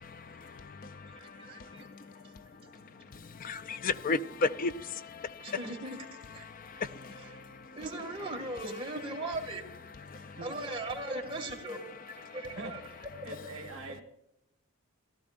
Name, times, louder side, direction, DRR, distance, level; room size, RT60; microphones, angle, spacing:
voice 1, 0.0-5.6 6.4-7.8 10.0-10.4 12.3-12.4, left 3 dB, 40° left, 0.4 m, -37 dB
voice 2, 1.1-1.9 2.2-2.3 5.4-6.0 6.3-6.4 7.2-7.4 7.8-9.6 10.4-12.8, right 2 dB, 25° right, 2.0 m, -39 dB
voice 3, 10.1-10.6 12.5-12.7 13.2-14.0, right 2 dB, 60° right, 1.5 m, -44 dB
15.5 x 12.5 x 2.5 m
head